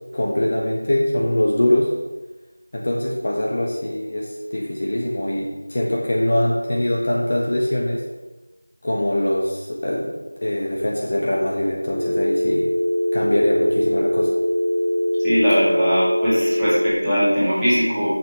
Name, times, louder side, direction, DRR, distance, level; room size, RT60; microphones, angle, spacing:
voice 1, 0.1-1.9 2.7-8.0 8.8-10.1 10.4-12.7 13.1-14.3, left 1 dB, 35° left, -3 dB, 1.3 m, -22 dB
Telephone, 11.9-16.9, equal, 15° left, 1.5 m, -22 dB
voice 2, 15.2-18.1, equal, ahead, -22 dB, 2.3 m, -20 dB
7.4 x 6.5 x 6.4 m, 1.1 s
figure-of-eight pair, 175°, 0 cm